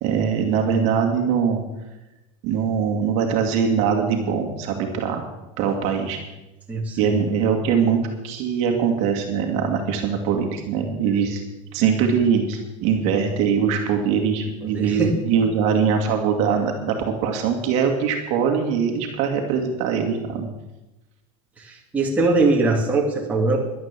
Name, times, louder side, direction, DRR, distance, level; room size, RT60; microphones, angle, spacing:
voice 1, 0.0-1.6 2.4-5.2 5.6-6.2 7.0-11.4 11.7-20.5, right 6 dB, 45° right, 3 dB, 2.1 m, -22 dB
voice 2, 6.7-7.2 11.1-11.2 14.7-15.1 21.6-23.6, right 3 dB, 10° right, -2 dB, 2.2 m, -21 dB
11.5 x 10.5 x 7.4 m, 1.0 s
supercardioid pair, 160°, 17 cm